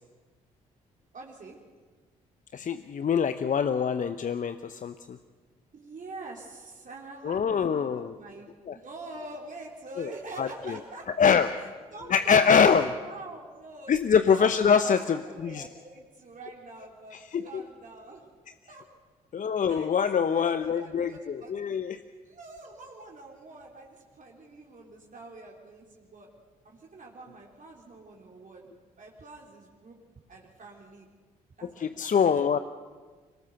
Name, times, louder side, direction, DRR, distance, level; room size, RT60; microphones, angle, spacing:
voice 1, 1.1-1.6 5.7-8.5 8.7-11.3 11.9-13.9 14.3-17.2 17.4-18.2 18.7-18.9 19.7-21.8 22.3-26.3 26.6-30.0 30.3-31.1 31.6-32.1, right 2 dB, 45° right, -1 dB, 3.8 m, -45 dB
voice 2, 2.5-5.2 7.2-8.1 8.7-8.8 10.0-10.1 10.4-10.8 11.1-11.5 12.1-12.9 13.9-15.6 17.1-17.6 19.3-22.0 31.6-32.6, left 6 dB, 45° left, 11 dB, 0.9 m, -24 dB
24.0 x 19.0 x 6.7 m, 1.4 s
hypercardioid pair, 45°, 19 cm